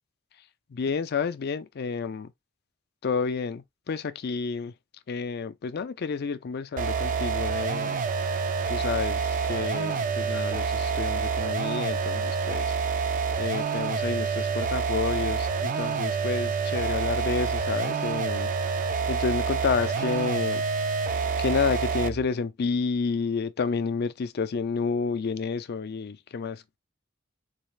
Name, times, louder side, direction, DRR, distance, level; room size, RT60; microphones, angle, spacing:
voice 1, 0.7-2.3 3.0-4.7 5.1-12.8 13.4-20.6 21.4-26.8, left 5 dB, 50° left, 0.4 m, -30 dB
sound 1, 6.8-22.3, right 5 dB, 40° right, 0.4 m, -27 dB
4.0 x 2.4 x 3.1 m
head